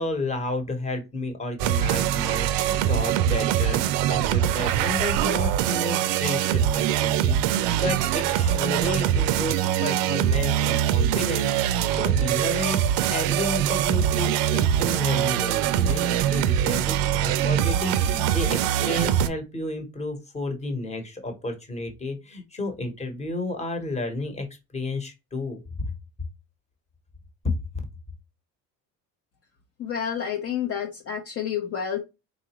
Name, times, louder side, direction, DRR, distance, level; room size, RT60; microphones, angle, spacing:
voice 1, 0.0-3.8 4.1-7.4 7.7-24.5 24.7-25.9 27.4-27.5, left 2 dB, 20° left, 5 dB, 1.1 m, -32 dB
sound 1, 1.6-19.3, right 10 dB, 85° right, 0.5 m, -23 dB
voice 2, 29.8-32.0, left 8 dB, 45° left, 2 dB, 0.7 m, -29 dB
4.0 x 2.5 x 2.9 m, 0.25 s
cardioid pair, 130°, 33 cm